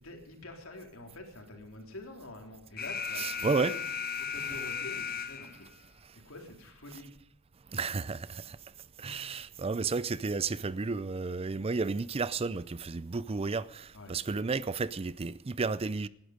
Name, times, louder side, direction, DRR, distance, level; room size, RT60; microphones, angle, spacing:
voice 1, 0.0-3.8 4.2-5.7 6.2-7.1 13.9-14.2, left 2 dB, 70° left, 3.7 m, -47 dB
Alarm, 2.8-5.7, left 6 dB, 45° left, 1.2 m, -36 dB
voice 2, 3.2-3.7 7.7-8.6 9.0-16.1, right 4 dB, 30° right, 0.4 m, -32 dB
19.0 x 11.5 x 5.1 m
head